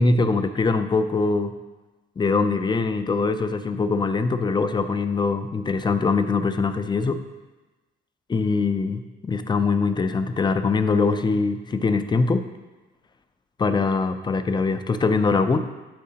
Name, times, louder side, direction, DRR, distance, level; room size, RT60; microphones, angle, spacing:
voice 1, 0.0-1.5 2.2-7.2 8.3-12.5 13.6-15.6, left 4 dB, 25° left, 9 dB, 0.5 m, -22 dB
12.0 x 4.8 x 2.8 m, 1.2 s
cardioid pair, 110°, 20 cm